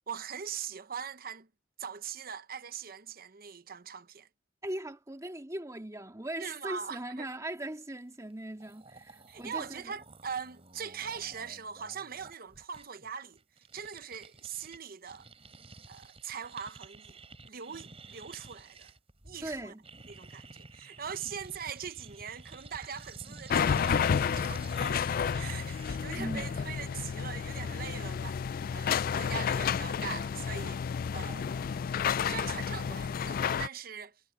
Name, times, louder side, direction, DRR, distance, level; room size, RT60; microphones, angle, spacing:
voice 1, 0.1-1.5 1.8-4.3 6.4-7.3 9.3-13.4 13.7-15.3 15.9-17.2 17.5-18.9 19.2-19.7 20.1-25.0 25.3-31.7 32.2-34.2, right 7 dB, 55° right, 0.9 m, -41 dB
voice 2, 4.6-9.9 19.4-19.8 26.1-26.5, right 1 dB, 15° right, 2.0 m, -39 dB
sound 1, 8.3-8.4 8.6-14.8 15.0-26.1, right 2 dB, 35° right, 3.6 m, -50 dB
sound 2, 23.5-33.7, left 7 dB, 50° left, 0.3 m, -31 dB
head